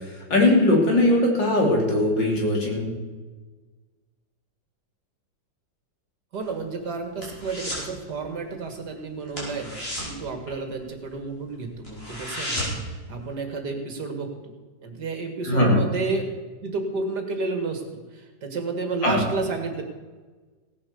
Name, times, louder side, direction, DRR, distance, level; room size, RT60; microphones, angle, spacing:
voice 1, 0.3-2.9 15.4-15.8 19.0-19.2, left 1 dB, 70° left, -1 dB, 3.9 m, -20 dB
sound 1, 6.3-7.9 8.2-8.5 8.8-8.9 9.3-11.2 11.5-11.6 11.8-13.0 13.3-13.4, equal, 30° left, 5.2 m, -33 dB
voice 2, 6.3-14.5 14.8-16.3 16.6-17.8 18.1-19.8, right 3 dB, 60° right, 5 dB, 2.4 m, -31 dB
17.0 x 8.6 x 6.9 m, 1.3 s
omnidirectional pair, 2.0 m